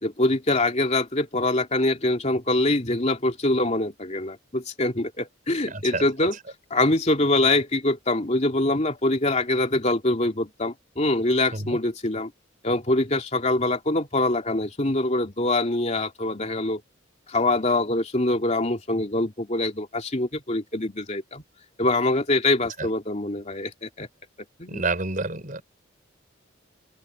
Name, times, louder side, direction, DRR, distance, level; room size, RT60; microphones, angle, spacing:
voice 1, 0.0-6.4 6.7-12.3 12.6-16.8 17.3-21.4 21.8-24.1 24.6-24.8, left 2 dB, 35° left, 3.0 m, -24 dB
voice 2, 5.7-6.0 11.5-11.8 22.8-22.9 24.7-25.6, right 3 dB, 45° right, 5.1 m, -29 dB
open air
head